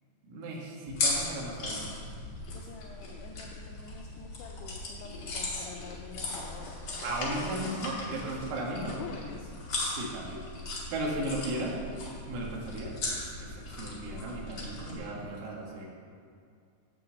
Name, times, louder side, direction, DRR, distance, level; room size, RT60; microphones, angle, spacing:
voice 1, 0.2-1.9 7.0-9.0 9.9-10.4 10.9-11.8 12.2-15.9, right 1 dB, 80° right, -3 dB, 4.2 m, -36 dB
sound 1, 0.9-14.9, left 2 dB, 50° left, 1.7 m, -37 dB
voice 2, 2.5-6.9 7.3-7.6 8.3-9.5, left 6 dB, 90° left, 1 dB, 2.4 m, -46 dB
12.5 x 4.7 x 8.0 m, 2.3 s
omnidirectional pair, 5.6 m